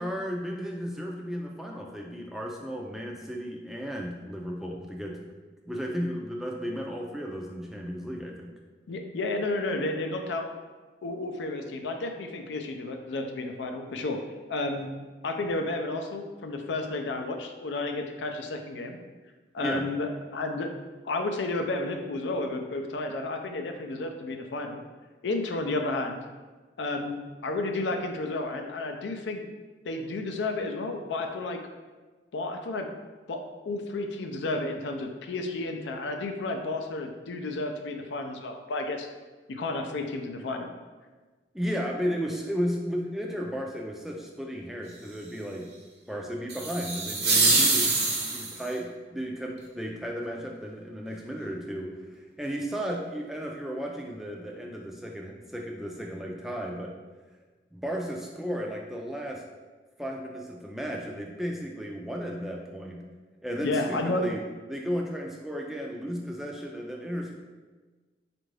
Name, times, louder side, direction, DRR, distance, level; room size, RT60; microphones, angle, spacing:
voice 1, 0.0-5.3 5.7-8.5 19.6-19.9 41.5-45.7 46.1-56.9 57.7-59.4 60.0-63.0 63.4-64.4 64.7-67.4, equal, ahead, -1 dB, 0.3 m, -34 dB
voice 2, 8.9-10.5 11.0-14.2 14.5-14.9 15.2-19.0 19.5-20.7 21.0-24.8 25.2-26.2 26.8-29.4 29.9-31.6 32.3-32.9 33.3-33.4 33.6-39.1 39.5-40.7 63.6-64.3, left 2 dB, 90° left, 4 dB, 0.4 m, -32 dB
sound 1, 46.5-48.7, right 3 dB, 65° right, 0.8 m, -24 dB
4.4 x 2.5 x 3.2 m, 1.3 s
head